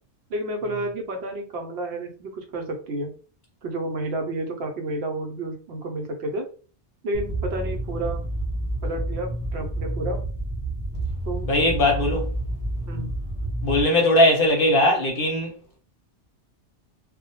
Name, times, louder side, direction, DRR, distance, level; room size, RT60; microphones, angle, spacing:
voice 1, 0.3-3.1 3.6-6.5 7.0-8.2 8.8-10.2 11.2-11.5 12.9-13.1, right 2 dB, 70° right, 0.8 m, -30 dB
sound 1, 7.1-13.8, right 1 dB, 40° right, 0.6 m, -29 dB
voice 2, 11.5-12.3 13.6-15.6, left 1 dB, 60° left, 0.8 m, -19 dB
2.1 x 2.1 x 2.8 m
omnidirectional pair, 1.2 m